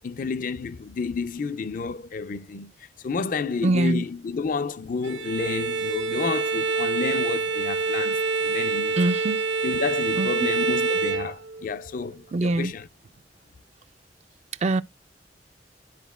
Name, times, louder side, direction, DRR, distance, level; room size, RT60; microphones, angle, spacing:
voice 1, 0.0-2.7 3.0-9.0 9.6-12.9, left 4 dB, 50° left, 0.5 m, -30 dB
voice 2, 3.6-4.0 9.0-9.4 10.2-10.3 12.3-12.7 14.6-14.8, right 2 dB, 40° right, 0.3 m, -23 dB
Bowed string instrument, 5.0-11.8, right 4 dB, 90° right, 0.9 m, -26 dB
12.0 x 4.2 x 2.2 m
head